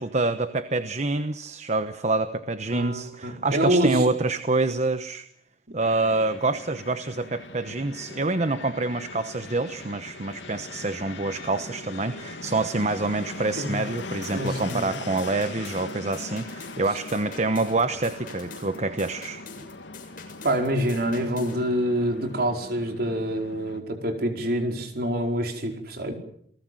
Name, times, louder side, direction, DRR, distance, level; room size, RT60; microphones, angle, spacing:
voice 1, 0.0-5.2 5.7-19.4, right 3 dB, 40° right, 11 dB, 1.0 m, -26 dB
voice 2, 2.7-4.0 13.6-13.8 14.3-14.9 20.4-26.1, right 1 dB, 60° right, 4 dB, 4.8 m, -26 dB
Fixed-wing aircraft airplane, 5.8-23.8, left 3 dB, 90° left, 2.5 m, -40 dB
sound 1, 14.0-21.6, left 5 dB, 50° left, 7.0 m, -45 dB
29.0 x 19.0 x 7.8 m, 0.67 s
head